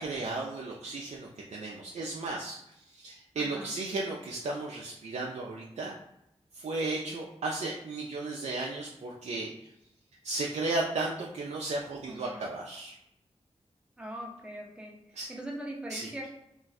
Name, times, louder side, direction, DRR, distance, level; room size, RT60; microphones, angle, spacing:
voice 1, 0.0-2.6 2.9-5.9 6.5-9.5 10.2-12.9 15.1-15.3 15.9-16.1, right 2 dB, 80° right, -3 dB, 0.4 m, -34 dB
voice 2, 3.4-3.7 12.1-12.4 14.0-15.0 15.3-16.3, right 1 dB, 10° right, -1 dB, 0.7 m, -41 dB
2.5 x 2.2 x 4.0 m, 0.82 s
wide cardioid pair, 70°, 11 cm